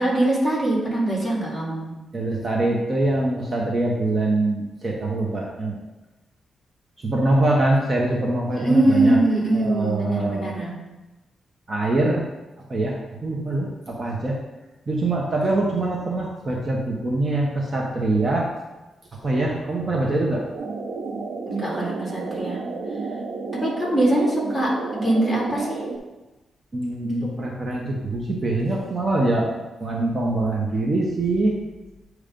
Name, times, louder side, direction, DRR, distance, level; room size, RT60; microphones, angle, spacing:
voice 1, 0.0-2.0 8.5-10.7 21.5-22.6 23.5-25.9, right 1 dB, 15° left, -4 dB, 2.2 m, -22 dB
voice 2, 2.1-5.8 7.0-9.2 9.5-10.6 11.7-12.2 12.7-14.4 14.9-18.5 19.2-20.4 26.7-31.6, right 2 dB, 30° right, -2 dB, 1.0 m, -24 dB
sound 1, 20.5-26.0, right 4 dB, 75° right, 0.7 m, -31 dB
8.7 x 3.2 x 5.1 m, 1.1 s
wide cardioid pair, 130°, 0 cm